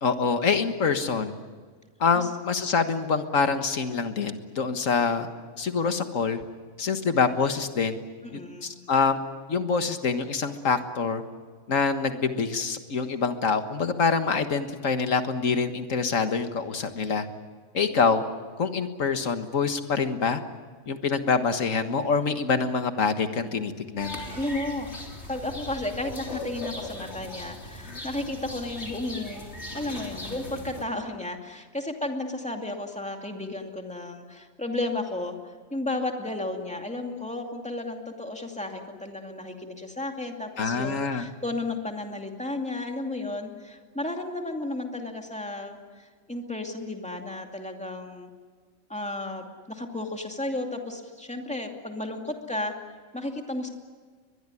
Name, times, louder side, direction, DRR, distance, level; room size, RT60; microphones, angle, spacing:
voice 1, 0.0-1.3 2.0-5.3 5.6-6.4 6.8-8.0 8.3-9.2 9.5-11.2 11.7-17.3 17.7-18.2 18.6-20.4 20.9-24.1 40.6-41.3, left 5 dB, 85° left, 8 dB, 1.9 m, -25 dB
voice 2, 8.2-8.8 24.3-25.0 25.3-35.4 35.7-48.3 48.9-52.7 53.1-53.7, left 2 dB, 5° left, 3 dB, 2.4 m, -33 dB
sound 1, 24.0-30.8, left 2 dB, 60° left, 3.9 m, -39 dB
23.0 x 21.5 x 9.9 m, 1.6 s
omnidirectional pair, 1.3 m